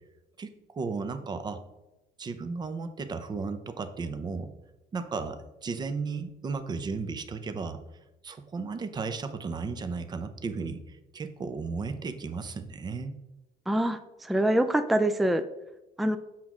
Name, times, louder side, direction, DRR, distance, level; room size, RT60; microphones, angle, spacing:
voice 1, 0.4-1.6 2.2-4.5 4.9-7.8 8.2-13.1, right 4 dB, 25° right, 9 dB, 0.7 m, -34 dB
voice 2, 13.7-15.4 16.0-16.2, right 1 dB, ahead, 10 dB, 0.3 m, -25 dB
7.4 x 6.0 x 3.7 m, 0.94 s
cardioid pair, 140°, 15 cm